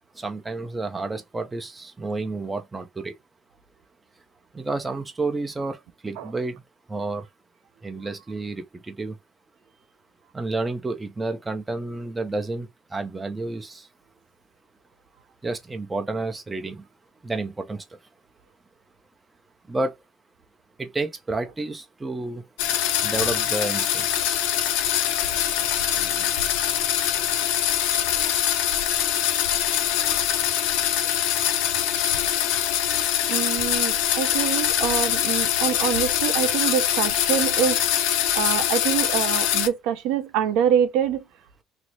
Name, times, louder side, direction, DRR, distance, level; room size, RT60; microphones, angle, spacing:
voice 1, 0.2-3.1 4.5-6.6 6.9-7.2 7.8-9.2 10.3-13.9 15.4-16.8 17.2-17.8 19.7-19.9 20.8-22.4 23.0-24.1, right 3 dB, 20° right, 0.6 m, -30 dB
sound 1, 22.6-39.7, left 10 dB, 80° left, 0.5 m, -23 dB
voice 2, 25.9-26.3 33.3-37.8 38.3-41.2, right 9 dB, 75° right, 0.5 m, -25 dB
3.0 x 2.0 x 4.0 m
supercardioid pair, 75°, 0 cm